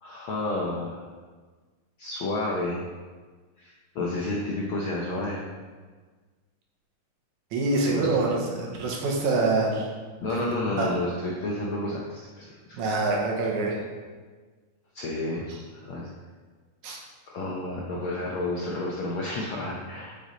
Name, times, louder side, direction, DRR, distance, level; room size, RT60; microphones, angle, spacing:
voice 1, 0.0-1.0 2.0-2.8 3.6-5.5 7.9-8.1 10.2-12.8 14.9-15.4 15.8-16.1 17.3-20.2, left 2 dB, 75° left, -3 dB, 1.2 m, -31 dB
voice 2, 7.5-9.9 10.3-10.9 12.7-13.8 15.5-15.6 16.8-17.0, right 3 dB, 75° right, -1 dB, 2.6 m, -26 dB
8.3 x 6.1 x 3.8 m, 1.4 s
omnidirectional pair, 3.4 m